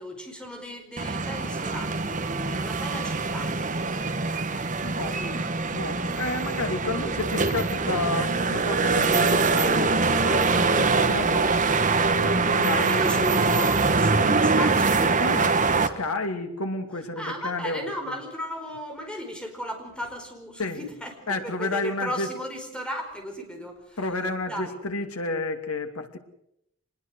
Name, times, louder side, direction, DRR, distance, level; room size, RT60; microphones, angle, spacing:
voice 1, 0.0-3.5 4.8-5.5 12.7-15.2 17.2-23.8 24.5-24.7, left 1 dB, 5° left, 3 dB, 4.8 m, -35 dB
sound 1, 1.0-15.9, right 4 dB, 35° right, 1.5 m, -23 dB
voice 2, 4.8-5.3 5.7-11.5 12.2-13.3 14.2-14.3 15.2-18.2 20.6-20.8 21.3-22.3 24.0-26.2, left 2 dB, 85° left, 6 dB, 2.7 m, -31 dB
25.0 x 20.5 x 6.4 m, 0.78 s
head